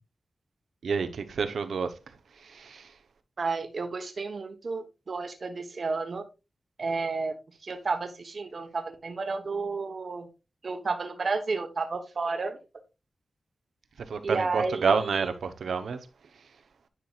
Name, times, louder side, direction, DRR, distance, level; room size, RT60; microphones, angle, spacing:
voice 1, 0.8-1.9 2.4-2.9 14.1-16.0, right 5 dB, 85° right, 0.9 m, -28 dB
voice 2, 3.4-6.2 6.8-7.3 7.6-10.3 10.6-12.6 14.2-15.3, right 4 dB, 50° right, 1.1 m, -31 dB
10.0 x 6.0 x 2.4 m
wide cardioid pair, 130°, 0 cm